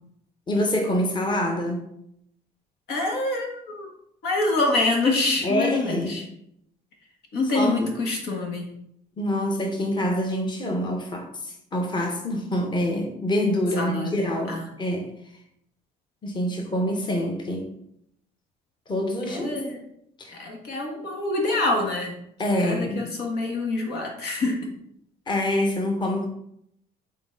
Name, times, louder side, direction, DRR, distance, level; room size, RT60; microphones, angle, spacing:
voice 1, 0.5-1.9 5.4-6.2 7.5-7.9 9.2-15.1 16.2-17.7 18.9-19.6 20.2-20.4 22.4-23.1 25.3-26.3, left 1 dB, 25° left, 3 dB, 1.1 m, -26 dB
voice 2, 2.9-3.9 4.2-6.2 7.3-8.7 13.8-14.6 19.3-19.8 20.3-22.1 22.6-24.6, left 2 dB, 75° left, 1 dB, 1.7 m, -26 dB
6.8 x 4.1 x 3.9 m, 0.75 s
cardioid pair, 110°, 17 cm